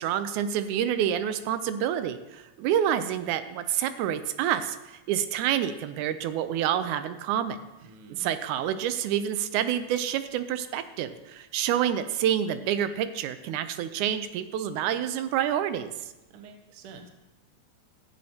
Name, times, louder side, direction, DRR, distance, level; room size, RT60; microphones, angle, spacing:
voice 1, 0.0-7.6 8.2-15.9, right 10 dB, 90° right, 11 dB, 2.1 m, -28 dB
voice 2, 7.8-8.3 16.3-17.1, right 4 dB, 65° right, 5 dB, 1.5 m, -48 dB
16.0 x 7.5 x 2.8 m, 1.0 s
omnidirectional pair, 3.4 m